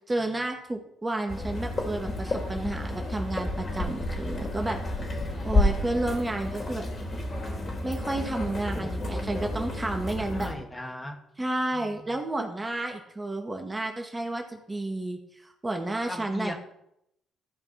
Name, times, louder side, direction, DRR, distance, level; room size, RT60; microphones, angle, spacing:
voice 1, 0.1-4.8 5.1-6.8 7.8-10.5 11.4-16.5, right 2 dB, 20° right, 3 dB, 1.8 m, -31 dB
sound 1, 1.3-10.5, left 1 dB, 40° left, 3.9 m, -30 dB
voice 2, 10.3-11.2 11.7-12.1 16.1-16.6, left 1 dB, 15° left, 3 dB, 2.1 m, -37 dB
14.0 x 5.3 x 5.9 m, 0.77 s
hypercardioid pair, 50°, 0 cm